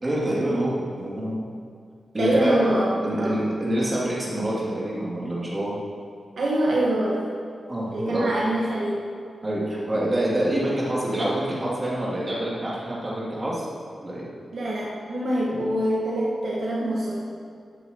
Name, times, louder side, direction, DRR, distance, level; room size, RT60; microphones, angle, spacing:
voice 1, 0.0-1.4 2.1-2.6 3.0-5.8 7.7-8.4 9.4-13.6 14.0-14.3, right 1 dB, 25° right, -7 dB, 2.7 m, -26 dB
voice 2, 2.2-3.4 6.4-7.2 7.9-9.0 14.5-17.2, right 1 dB, 70° right, -5 dB, 1.5 m, -24 dB
14.5 x 8.0 x 3.0 m, 2.3 s
wide cardioid pair, 115°, 0 cm